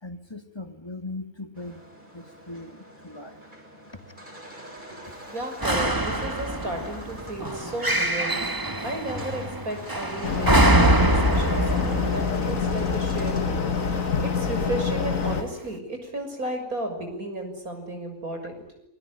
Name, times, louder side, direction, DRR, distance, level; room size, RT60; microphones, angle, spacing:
voice 1, 0.0-1.9 2.1-3.4, left 2 dB, 15° left, 7 dB, 2.7 m, -39 dB
sound 1, 1.5-14.6, right 1 dB, 30° right, 8.1 m, -44 dB
voice 2, 5.3-8.4 8.8-18.6, right 1 dB, 70° right, 5 dB, 7.1 m, -34 dB
sound 2, 5.6-13.9 14.6-14.7, right 1 dB, 15° right, 1.5 m, -24 dB
sound 3, 10.2-15.4, left 5 dB, 65° left, 2.2 m, -26 dB
28.0 x 21.0 x 9.8 m, 0.73 s
omnidirectional pair, 1.5 m